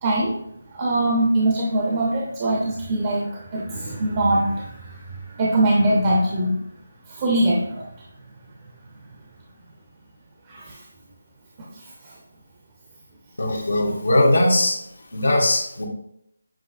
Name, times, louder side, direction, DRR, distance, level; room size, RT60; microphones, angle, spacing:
voice 1, 0.0-0.4 0.7-6.6 7.1-7.9 10.5-10.8 11.7-12.1, right 1 dB, 30° right, -3 dB, 0.7 m, -22 dB
voice 2, 13.4-14.8 15.1-15.8, left 1 dB, 85° left, -2 dB, 1.1 m, -19 dB
7.3 x 2.7 x 2.5 m, 0.74 s
figure-of-eight pair, 165°, 0 cm